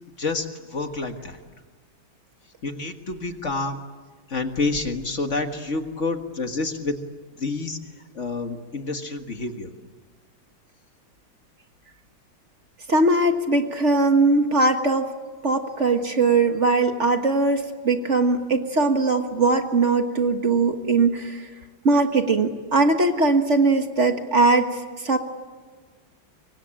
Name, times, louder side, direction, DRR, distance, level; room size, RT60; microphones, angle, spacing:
voice 1, 0.2-1.4 2.6-3.8 4.3-7.0 7.4-7.8 8.1-9.7, left 3 dB, 40° left, 6 dB, 1.8 m, -28 dB
voice 2, 12.9-15.1 15.4-21.5 21.8-25.2, right 3 dB, 40° right, 6 dB, 1.6 m, -20 dB
25.5 x 24.0 x 8.8 m, 1.4 s
omnidirectional pair, 2.2 m